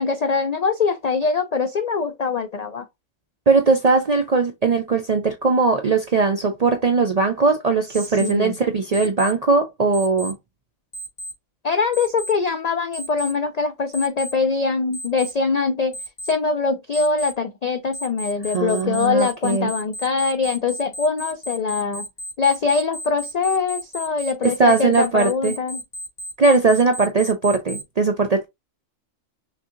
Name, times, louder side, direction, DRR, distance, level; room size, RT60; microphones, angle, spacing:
voice 1, 0.0-2.9 8.2-8.5 11.6-16.0 16.3-22.1 22.4-25.8, left 4 dB, 65° left, 0.4 m, -23 dB
voice 2, 3.5-10.3 18.5-19.7 24.4-25.6 26.4-28.4, right 4 dB, 55° right, 0.4 m, -19 dB
Alarm, 7.9-8.3 8.9-9.3 9.9-10.3 10.9-11.3 11.9-12.3 12.9-13.3 13.9-14.3 14.9-15.3 15.9-16.3 16.9-17.3 17.9-27.8, right 1 dB, 45° left, 1.0 m, -33 dB
5.8 x 2.7 x 2.5 m
omnidirectional pair, 1.3 m